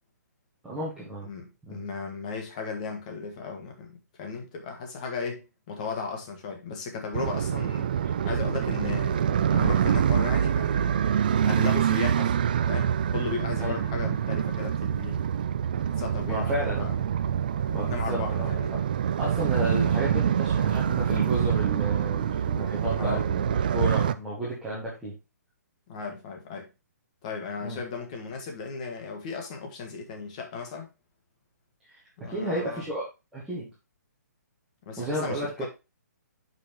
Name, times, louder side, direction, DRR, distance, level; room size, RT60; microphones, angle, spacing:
voice 1, 0.6-1.3 1.7-1.8 13.6-13.8 16.2-16.9 17.7-18.8 19.2-25.1 27.6-27.8 31.9-32.0 32.3-33.0 33.3-33.7 35.0-35.7, right 1 dB, 5° right, 1.6 m, -32 dB
voice 2, 1.2-8.0 8.2-11.0 11.5-12.3 12.7-15.2 15.8-17.0 17.9-18.7 23.0-23.2 25.9-26.7 27.2-30.9 32.2-32.8 34.8-35.7, left 4 dB, 25° left, 1.7 m, -36 dB
sound 1, 7.1-24.1, right 8 dB, 30° right, 0.3 m, -26 dB
8.2 x 5.7 x 3.0 m
hypercardioid pair, 175°, 9 cm